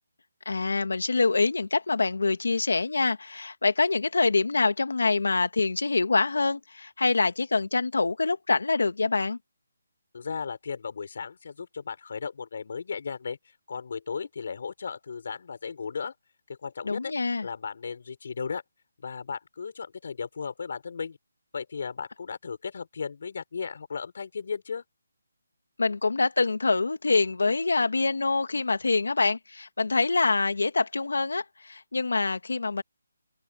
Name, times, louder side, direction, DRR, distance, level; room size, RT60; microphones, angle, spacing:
voice 1, 0.4-9.4 16.8-17.5 25.8-32.8, left 3 dB, 90° left, 1.6 m, -25 dB
voice 2, 10.1-13.4 13.7-16.1 16.5-17.1 17.4-18.6 19.0-21.2 21.5-24.8, left 5 dB, 40° left, 4.5 m, -35 dB
open air
hypercardioid pair, 180°, 0 cm